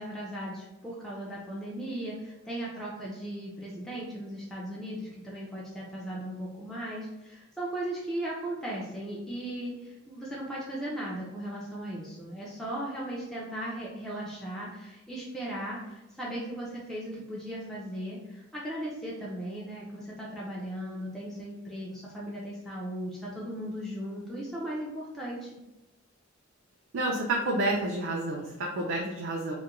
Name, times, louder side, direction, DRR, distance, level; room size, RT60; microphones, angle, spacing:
voice 1, 0.0-25.6, right 1 dB, ahead, -6 dB, 0.4 m, -37 dB
voice 2, 26.9-29.5, right 2 dB, 65° right, -2 dB, 0.4 m, -29 dB
2.3 x 2.1 x 2.9 m, 1.0 s
head